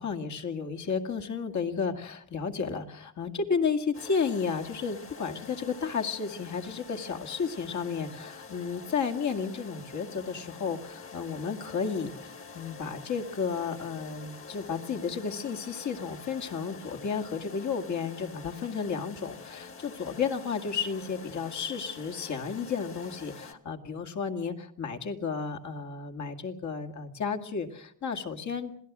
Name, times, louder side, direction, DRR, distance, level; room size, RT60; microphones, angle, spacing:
voice 1, 0.0-28.7, left 5 dB, 55° left, 5 dB, 2.3 m, -32 dB
sound 1, 3.9-23.5, left 4 dB, 40° left, 2.2 m, -47 dB
27.0 x 17.5 x 6.2 m, 0.68 s
cardioid pair, 95°, 34 cm